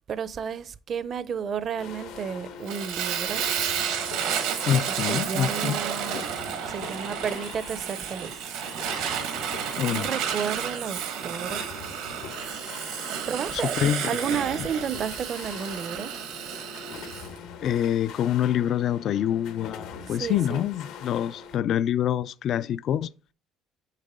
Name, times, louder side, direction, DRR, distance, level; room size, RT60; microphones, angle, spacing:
voice 1, 0.1-3.4 5.1-6.3 6.7-8.4 9.9-11.7 13.3-16.1 20.1-20.7, right 7 dB, 45° right, 0.6 m, -32 dB
sound 1, 1.8-21.6, left 6 dB, 80° left, 1.2 m, -43 dB
Fire, 2.7-17.3, right 8 dB, 85° right, 1.4 m, -31 dB
voice 2, 4.7-5.8 6.1-6.2 9.7-10.1 13.5-14.1 17.6-23.1, left 10 dB, 55° left, 0.3 m, -26 dB
6.6 x 5.4 x 3.6 m
cardioid pair, 105°, 0 cm